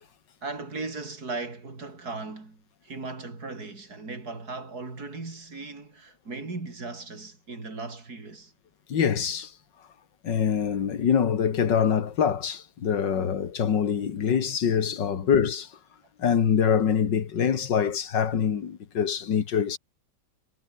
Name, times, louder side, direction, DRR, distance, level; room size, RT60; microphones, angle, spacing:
voice 1, 0.4-8.5 13.1-13.3 15.2-15.4, right 3 dB, 60° right, 4.9 m, -37 dB
voice 2, 8.9-9.5 10.2-15.7 16.2-19.8, left 7 dB, 90° left, 2.4 m, -24 dB
omnidirectional pair, 1.9 m